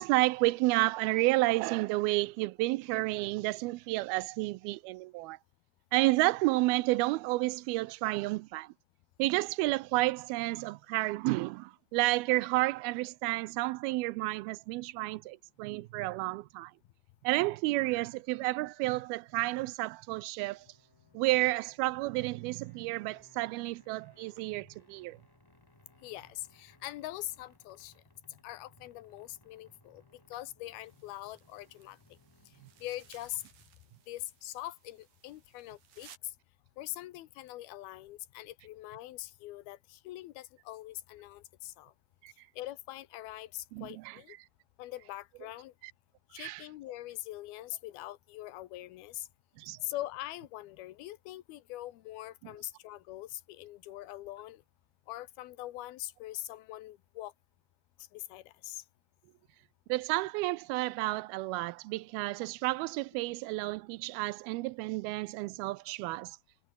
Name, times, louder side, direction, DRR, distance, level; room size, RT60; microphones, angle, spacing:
voice 1, 0.0-5.4 5.9-8.7 9.2-16.7 17.2-20.7 21.1-25.2 42.2-42.3 43.7-44.2 46.4-46.6 49.6-49.8 59.9-66.4, right 20 dB, 90° right, 2.5 m, -31 dB
sound 1, 20.5-33.8, left 1 dB, 5° left, 4.7 m, -65 dB
voice 2, 26.0-27.9 28.3-30.0 30.3-32.0 32.8-33.4 34.1-36.1 36.8-41.9 42.6-44.4 44.8-45.7 46.3-49.3 49.8-54.6 55.1-57.3 58.1-58.8, left 15 dB, 90° left, 3.0 m, -43 dB
sound 2, 30.8-36.2, right 8 dB, 70° right, 4.4 m, -61 dB
omnidirectional pair, 4.3 m